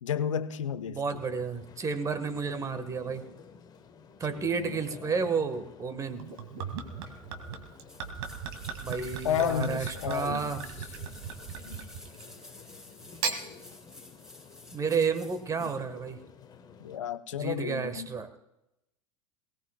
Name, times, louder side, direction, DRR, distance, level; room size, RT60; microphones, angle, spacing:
voice 1, 0.0-1.0 4.3-4.8 5.2-5.3 9.2-10.5 11.7-11.8 15.6-15.7 16.8-18.1, left 9 dB, 65° left, 0.8 m, -32 dB
voice 2, 0.9-3.3 4.2-6.2 8.8-10.6 14.7-16.2 17.3-18.4, right 5 dB, 20° right, 1.5 m, -31 dB
sound 1, 1.2-17.0, left 6 dB, 25° left, 1.2 m, -52 dB
Gurgling / Chink clink / Liquid, 6.2-12.3 13.0-13.4, right 6 dB, 55° right, 2.1 m, -37 dB
sound 2, 7.9-15.8 16.1-16.2, left 2 dB, 5° right, 3.7 m, -51 dB
22.0 x 18.5 x 2.3 m
figure-of-eight pair, 85°, 17 cm